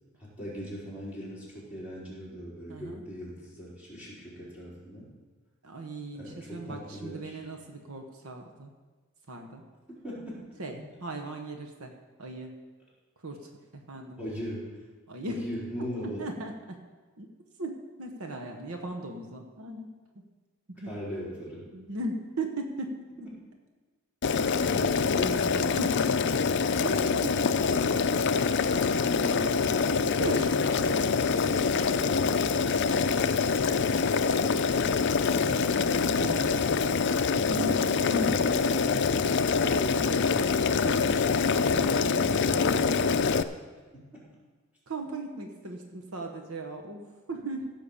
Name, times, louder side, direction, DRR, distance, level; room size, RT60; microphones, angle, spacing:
voice 1, 0.2-5.1 6.1-7.4 10.0-10.5 10.7-10.8 14.2-14.8 15.3-16.2 20.9-21.7 27.6-27.9 28.5-30.2 36.8-37.2 37.9-39.1 39.6-40.7 44.1-44.3, equal, 5° right, -8 dB, 4.1 m, -39 dB
voice 2, 2.7-3.0 5.6-8.7 9.3-9.6 10.6-11.9 12.2-12.6 13.2-14.2 15.1-15.4 16.2-16.9 17.2-17.3 17.6-19.9 20.7-20.9 21.7-23.1 24.8-26.2 26.8-27.4 30.2-30.9 34.1-34.2 35.3-35.6 36.1-36.7 37.5-38.4 40.9-43.0 44.9-47.7, right 1 dB, 75° right, 3 dB, 1.2 m, -37 dB
Boiling, 24.2-43.4, left 5 dB, 55° left, 0.5 m, -25 dB
15.5 x 5.7 x 7.1 m, 1.3 s
head